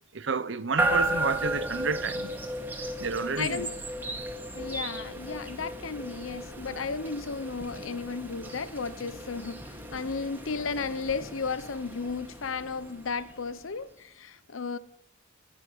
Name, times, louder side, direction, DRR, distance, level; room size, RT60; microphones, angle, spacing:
voice 1, 0.1-2.3 3.0-3.7, right 5 dB, 65° right, 0.8 m, -30 dB
sound 1, 0.8-13.8, right 1 dB, 10° right, 2.1 m, -34 dB
voice 2, 3.4-3.7 4.6-14.8, left 5 dB, 80° left, 0.8 m, -34 dB
20.0 x 9.2 x 6.3 m
head